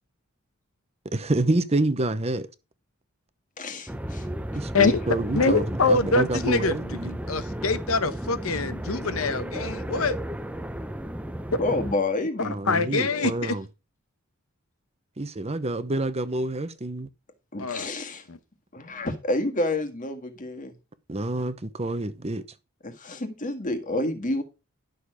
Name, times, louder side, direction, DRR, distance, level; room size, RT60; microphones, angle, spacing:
voice 1, 1.0-2.5 4.5-7.1 12.4-13.7 15.2-17.1 21.1-22.4, right 2 dB, 30° right, 0.9 m, -27 dB
voice 2, 3.6-4.3 4.8-4.9 11.6-13.3 17.5-18.2 18.7-20.8 22.8-24.4, left 2 dB, 35° left, 1.8 m, -29 dB
sound 1, 3.9-11.9, right 1 dB, 5° right, 0.6 m, -34 dB
voice 3, 5.3-10.2 12.7-13.6 17.6-17.9 18.3-18.4, left 3 dB, 70° left, 1.0 m, -24 dB
11.5 x 6.7 x 4.9 m
head